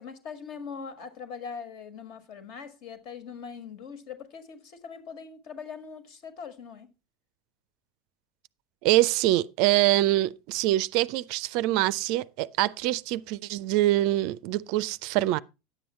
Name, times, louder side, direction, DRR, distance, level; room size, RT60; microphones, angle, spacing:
voice 1, 0.0-6.9, left 6 dB, 50° left, 1.7 m, -41 dB
voice 2, 8.8-15.4, right 16 dB, 55° right, 0.4 m, -24 dB
10.0 x 7.7 x 4.3 m
figure-of-eight pair, 80°, 0 cm